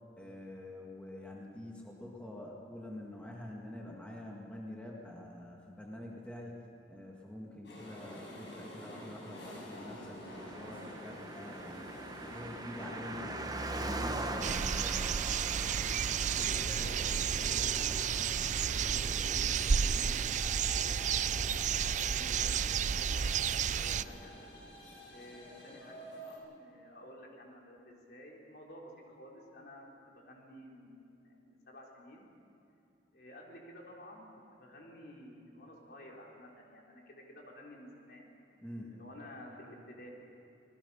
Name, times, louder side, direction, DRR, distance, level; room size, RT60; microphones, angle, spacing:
voice 1, 0.2-6.6 6.9-11.9 12.2-15.0 23.8-24.2 38.6-38.9, left 1 dB, 5° left, -2 dB, 1.9 m, -46 dB
sound 1, 7.6-26.4, equal, 80° left, 6.3 m, -47 dB
Car passing by, 10.3-22.1 22.4-22.5, right 2 dB, 20° right, 1.1 m, -43 dB
sound 2, 14.4-24.0, right 7 dB, 45° right, 0.4 m, -31 dB
voice 2, 16.4-23.3 23.6-24.3 25.1-32.3 33.1-38.3 38.8-40.1, left 1 dB, 60° left, -2 dB, 3.9 m, -53 dB
25.5 x 20.0 x 5.6 m, 2.6 s
head